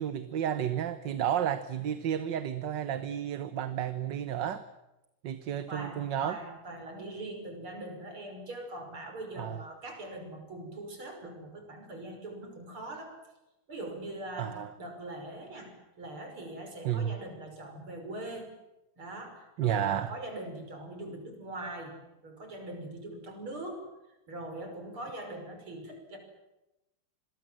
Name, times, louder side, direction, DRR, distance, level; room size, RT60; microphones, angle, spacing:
voice 1, 0.0-4.6 5.2-6.4 9.4-9.6 14.4-14.7 16.8-17.2 19.6-20.1, right 9 dB, 60° right, 12 dB, 1.7 m, -31 dB
voice 2, 5.7-13.1 13.7-18.5 19.0-22.0 22.2-23.9 24.3-26.2, right 1 dB, 80° right, 4 dB, 6.6 m, -42 dB
26.5 x 22.0 x 7.7 m, 0.94 s
omnidirectional pair, 2.3 m